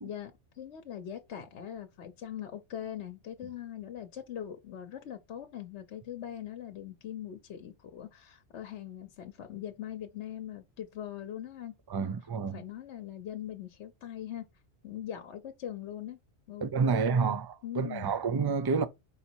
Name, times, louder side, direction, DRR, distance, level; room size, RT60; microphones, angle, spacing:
voice 1, 0.0-11.7 12.0-12.1 12.5-14.4 14.8-16.2 16.5-18.1, left 10 dB, 70° left, 1.1 m, -41 dB
voice 2, 11.9-12.6 16.6-18.9, right 5 dB, 30° right, 0.4 m, -29 dB
5.6 x 4.0 x 4.4 m
omnidirectional pair, 1.2 m